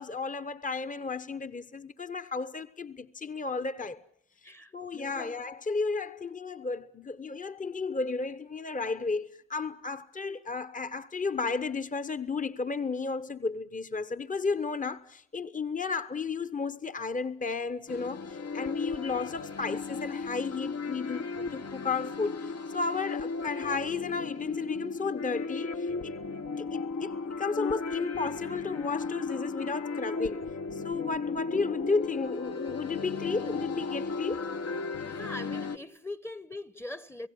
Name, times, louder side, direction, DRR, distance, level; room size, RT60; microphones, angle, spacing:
voice 1, 0.0-4.0 4.7-26.2 26.6-30.4 30.7-34.4, left 4 dB, 25° left, 1.0 m, -33 dB
voice 2, 4.4-5.4 35.0-37.3, left 2 dB, 10° left, 1.0 m, -42 dB
sound 1, 17.9-35.8, left 4 dB, 55° left, 1.1 m, -35 dB
29.0 x 17.0 x 9.9 m
cardioid pair, 55°, 30 cm